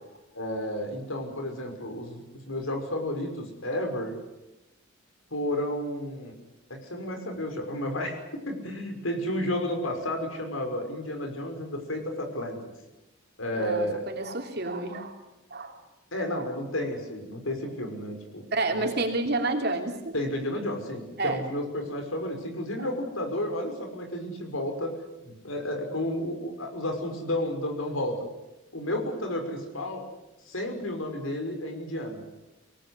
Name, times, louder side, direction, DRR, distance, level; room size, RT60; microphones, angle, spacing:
voice 1, 0.3-2.2 2.5-4.2 5.3-6.3 6.7-12.7 13.4-14.1 16.1-18.5 18.7-18.9 20.1-28.3 28.7-30.0 30.5-32.2, left 1 dB, 85° left, 4 dB, 5.7 m, -32 dB
voice 2, 13.5-15.2 15.5-15.8 16.3-16.5 18.5-20.1 21.2-21.4 22.8-22.9, right 2 dB, 50° right, 3 dB, 3.1 m, -30 dB
24.5 x 18.0 x 9.8 m, 0.97 s
head